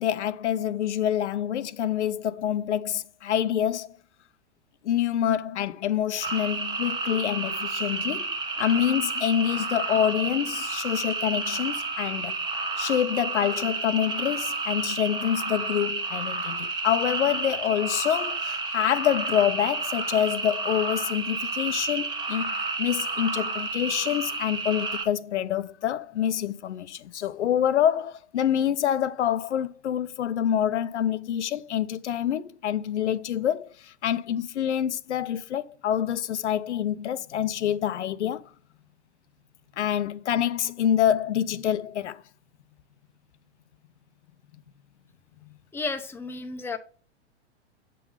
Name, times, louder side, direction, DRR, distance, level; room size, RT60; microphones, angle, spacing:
voice 1, 0.0-3.9 4.8-8.3 8.6-12.4 12.8-38.4 39.8-42.2, left 10 dB, 80° left, 0.6 m, -26 dB
sound 1, 6.2-25.0, right 3 dB, 15° right, 1.0 m, -31 dB
voice 2, 45.7-46.8, left 3 dB, 5° left, 0.7 m, -32 dB
8.3 x 3.8 x 5.6 m
hypercardioid pair, 115°, 34 cm